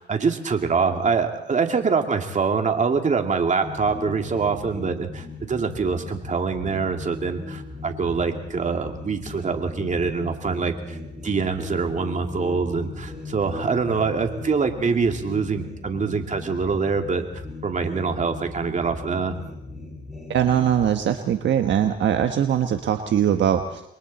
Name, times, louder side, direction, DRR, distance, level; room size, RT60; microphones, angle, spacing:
voice 1, 0.0-11.0 11.2-19.4, right 5 dB, 40° right, 5 dB, 2.5 m, -24 dB
sound 1, 3.6-20.9, left 2 dB, ahead, 8.0 m, -38 dB
voice 2, 20.3-23.8, right 9 dB, 65° right, 6 dB, 1.3 m, -21 dB
28.0 x 22.5 x 4.2 m, 0.77 s
cardioid pair, 90°, 20 cm